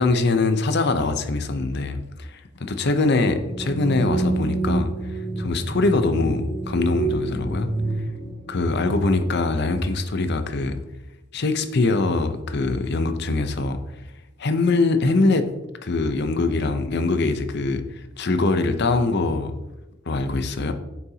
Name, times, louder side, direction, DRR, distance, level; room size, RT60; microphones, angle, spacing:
voice 1, 0.0-7.7 8.5-10.8 11.3-13.8 14.4-15.5 15.8-19.5 20.1-20.7, left 3 dB, 60° left, 9 dB, 0.7 m, -23 dB
sound 1, 3.1-9.5, right 3 dB, 45° left, 2.3 m, -28 dB
8.7 x 7.0 x 2.8 m, 1.0 s
head